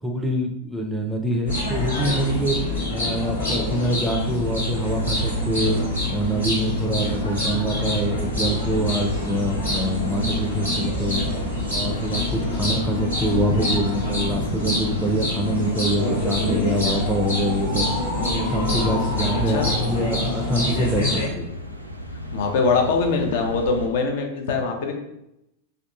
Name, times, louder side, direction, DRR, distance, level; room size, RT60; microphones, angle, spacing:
voice 1, 0.0-2.6 2.9-5.8 6.1-11.3 11.7-17.9 18.4-21.5, right 1 dB, 5° right, 1 dB, 0.5 m, -25 dB
sound 1, 1.5-21.3, left 1 dB, 80° left, 1.2 m, -26 dB
sound 2, 4.5-23.9, equal, 85° right, 0.3 m, -35 dB
voice 2, 22.3-24.9, left 4 dB, 50° left, 3 dB, 0.5 m, -22 dB
3.5 x 2.3 x 2.5 m, 0.86 s
figure-of-eight pair, 90°, 0 cm